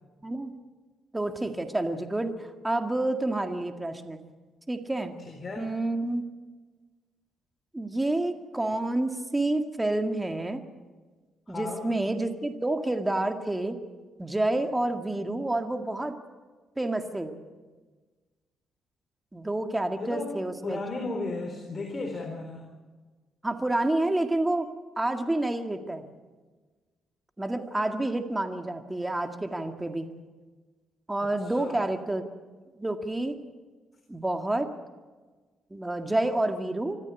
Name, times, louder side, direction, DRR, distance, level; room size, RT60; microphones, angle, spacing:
voice 1, 0.2-0.5 1.1-4.2 4.7-5.2 5.6-6.2 7.7-10.6 11.5-13.8 14.2-16.1 16.8-17.4 19.3-20.8 23.4-26.0 27.4-30.1 31.1-32.2 32.8-33.4 34.1-34.7 35.7-37.0, right 2 dB, 15° right, 6 dB, 1.9 m, -29 dB
voice 2, 5.2-5.7 11.5-11.9 20.0-20.4 20.6-22.7 31.2-31.9, left 3 dB, 35° left, 3 dB, 3.8 m, -35 dB
25.5 x 14.0 x 8.4 m, 1.3 s
cardioid pair, 90°, 0 cm